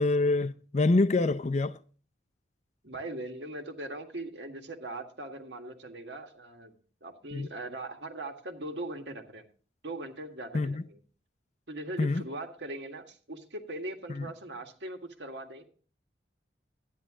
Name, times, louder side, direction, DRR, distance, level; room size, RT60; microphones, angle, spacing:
voice 1, 0.0-1.8 7.3-7.5 10.5-10.8 12.0-12.2 14.1-14.3, left 2 dB, 40° left, 0.5 m, -26 dB
voice 2, 2.8-6.8 7.0-9.4 9.8-11.0 11.7-15.6, right 2 dB, 70° right, 1.8 m, -40 dB
12.5 x 10.0 x 3.7 m
head